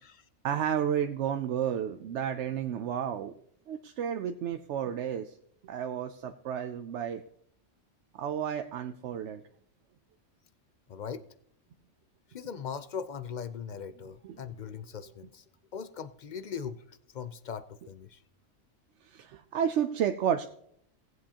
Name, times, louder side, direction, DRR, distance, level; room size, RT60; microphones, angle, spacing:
voice 1, 0.4-3.3 3.7-5.4 5.6-7.2 8.2-9.4 19.0-20.4, right 9 dB, 75° right, 7 dB, 0.9 m, -31 dB
voice 2, 10.9-11.2 12.3-15.4 15.7-18.2, left 7 dB, 55° left, 12 dB, 0.5 m, -40 dB
18.0 x 7.8 x 2.8 m, 0.68 s
omnidirectional pair, 1.2 m